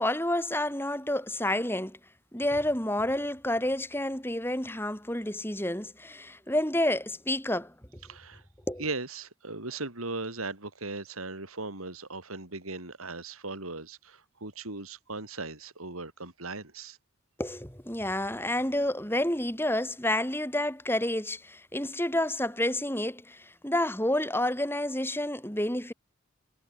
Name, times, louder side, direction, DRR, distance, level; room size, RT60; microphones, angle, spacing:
voice 1, 0.0-2.0 2.3-7.7 8.7-8.8 17.4-25.9, left 1 dB, 10° left, 6.5 m, -29 dB
voice 2, 8.0-8.4 8.8-17.0, right 3 dB, 90° right, 4.3 m, -38 dB
head